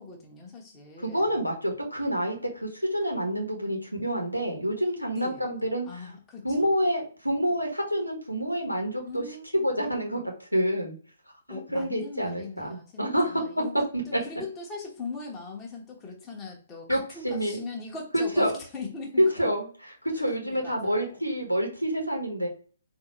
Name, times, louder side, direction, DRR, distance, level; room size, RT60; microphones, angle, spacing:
voice 1, 0.0-1.4 5.1-5.5 5.8-6.7 9.0-9.7 11.5-19.5 20.1-21.2, left 4 dB, 15° left, -1 dB, 1.1 m, -40 dB
voice 2, 1.0-5.9 6.4-9.2 9.6-10.2 10.5-10.9 11.5-13.3 13.9-14.2 16.9-17.6 18.1-18.5 19.4-19.7 20.1-22.5, equal, 90° left, 2 dB, 1.3 m, -28 dB
4.0 x 2.7 x 4.1 m, 0.41 s
figure-of-eight pair, 125°, 0 cm